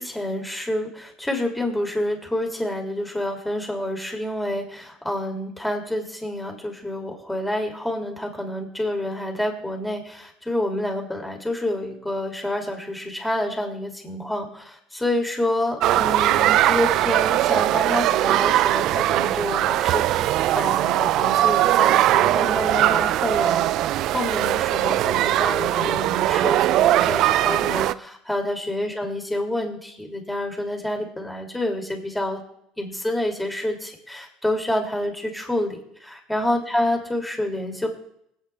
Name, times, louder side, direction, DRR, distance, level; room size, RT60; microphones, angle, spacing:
voice 1, 0.0-32.4 32.8-37.9, left 1 dB, 5° left, 1 dB, 3.4 m, -28 dB
sound 1, 15.8-27.9, right 13 dB, 60° right, 0.4 m, -20 dB
20.5 x 8.8 x 3.5 m, 0.76 s
supercardioid pair, 105°, 0 cm